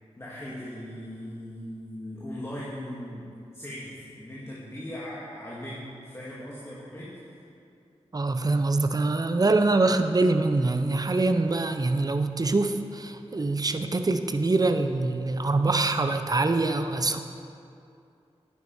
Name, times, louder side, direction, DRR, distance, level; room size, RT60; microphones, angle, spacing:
voice 1, 0.2-7.2, left 1 dB, 25° left, -7 dB, 2.0 m, -39 dB
voice 2, 8.1-17.2, right 3 dB, 35° right, 8 dB, 0.7 m, -24 dB
11.0 x 9.0 x 4.6 m, 2.6 s
cardioid pair, 55°, 11 cm